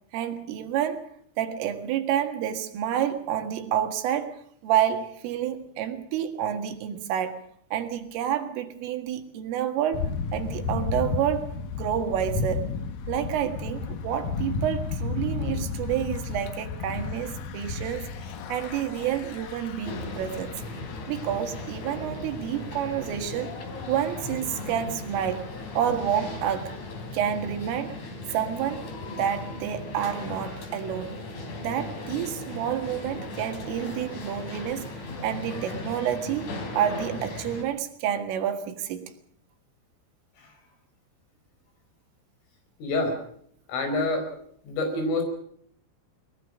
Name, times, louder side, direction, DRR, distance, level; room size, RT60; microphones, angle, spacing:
voice 1, 0.1-1.1 1.4-7.4 7.7-11.5 11.8-12.7 13.1-18.1 18.5-20.6 21.1-23.5 23.9-25.5 25.8-26.7 27.1-28.0 28.3-31.2 31.6-34.9 35.2-39.0, right 10 dB, 90° right, 4.4 m, -29 dB
Thunder / Bicycle, 9.9-27.1, left 4 dB, 60° left, 2.5 m, -34 dB
sound 1, 19.8-37.6, left 2 dB, 40° left, 4.2 m, -37 dB
voice 2, 42.8-43.2 43.7-44.3 44.7-45.2, left 2 dB, 80° left, 7.4 m, -26 dB
21.5 x 21.5 x 6.3 m
omnidirectional pair, 5.6 m